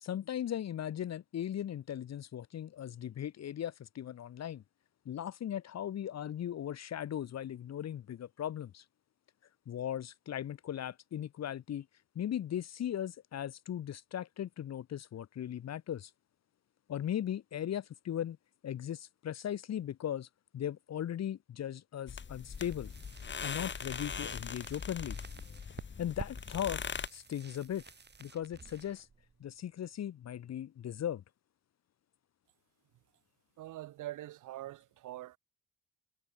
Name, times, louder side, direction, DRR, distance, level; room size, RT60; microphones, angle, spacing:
voice 1, 0.0-4.6 5.0-8.8 9.7-11.9 12.1-16.1 16.9-18.4 18.6-20.3 20.5-22.9 23.4-25.2 26.0-26.8 27.1-27.8 28.2-29.1 29.4-31.2, left 10 dB, 60° left, 1.6 m, -38 dB
sound 1, 22.1-27.1, left 6 dB, 40° left, 2.6 m, -41 dB
sound 2, 22.3-30.1, right 5 dB, 35° right, 7.7 m, -52 dB
voice 2, 33.6-35.4, right 15 dB, 85° right, 2.9 m, -44 dB
cardioid pair, 90°, 30 cm